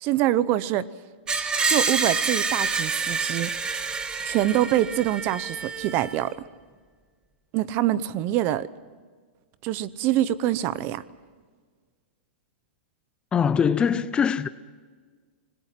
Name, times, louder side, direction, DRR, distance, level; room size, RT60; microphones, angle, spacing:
voice 1, 0.0-0.9 1.7-3.5 4.2-6.3 7.5-8.7 9.6-11.0, right 13 dB, 35° right, 0.8 m, -25 dB
Screech, 1.3-6.2, right 4 dB, 15° right, 1.4 m, -27 dB
voice 2, 13.3-14.5, left 7 dB, 15° left, 0.5 m, -22 dB
25.5 x 21.0 x 5.9 m
hypercardioid pair, 150°, 6 cm